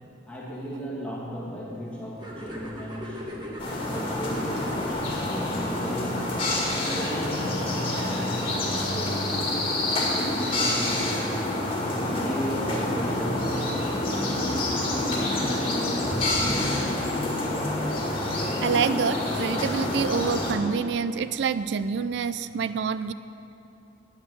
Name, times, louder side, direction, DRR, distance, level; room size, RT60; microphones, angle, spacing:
voice 1, 0.0-6.2 6.7-11.1 11.8-14.4 16.4-16.7, equal, 5° left, -6 dB, 1.5 m, -37 dB
sound 1, 2.2-8.4, equal, 25° right, 1.4 m, -40 dB
sound 2, 3.6-20.5, left 1 dB, 30° left, 2.1 m, -27 dB
voice 2, 18.3-23.1, right 6 dB, 65° right, 13 dB, 0.3 m, -27 dB
10.0 x 9.0 x 7.6 m, 2.8 s
head